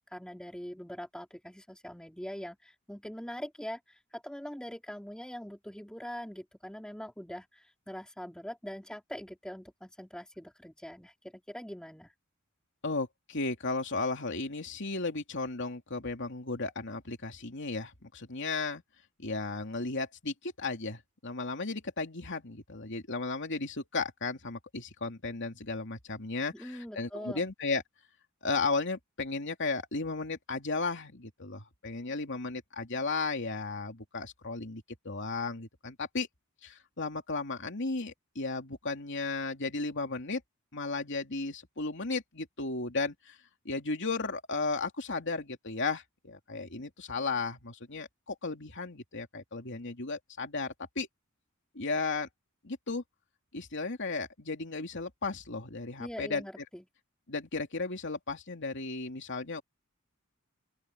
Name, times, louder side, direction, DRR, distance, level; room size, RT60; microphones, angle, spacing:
voice 1, 0.0-12.1 26.5-27.5 56.0-56.8, equal, 5° left, 3.8 m, -43 dB
voice 2, 12.8-18.8 19.2-27.8 28.4-36.3 36.6-40.4 40.7-43.4 43.6-51.1 51.7-52.3 52.6-53.0 53.5-56.4 57.3-59.6, left 3 dB, 60° left, 2.9 m, -35 dB
open air
head